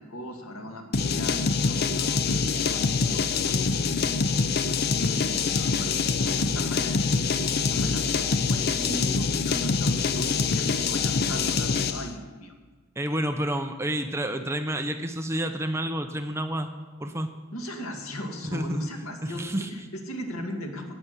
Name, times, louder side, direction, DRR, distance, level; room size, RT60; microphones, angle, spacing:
voice 1, 0.0-3.9 4.6-12.5 17.5-20.9, equal, 85° left, 2 dB, 2.2 m, -38 dB
sound 1, 0.9-12.1, left 5 dB, 50° left, 0.6 m, -25 dB
voice 2, 13.0-16.7 17.0-17.3 18.5-18.9 19.2-19.7, right 1 dB, 10° right, 6 dB, 0.7 m, -29 dB
18.0 x 6.1 x 8.2 m, 1.3 s
head